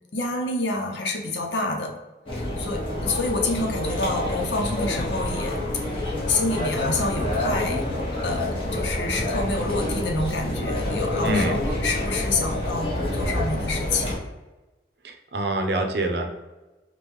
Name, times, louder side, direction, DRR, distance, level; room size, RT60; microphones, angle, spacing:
voice 1, 0.1-2.0 2.3-7.9 8.2-14.2, left 2 dB, 90° left, 2 dB, 0.7 m, -28 dB
sound 1, 2.3-14.2, left 1 dB, 30° left, 0.9 m, -28 dB
voice 2, 11.2-11.6 15.0-16.3, right 1 dB, 70° right, 4 dB, 0.6 m, -25 dB
5.2 x 2.3 x 3.0 m, 1.1 s
head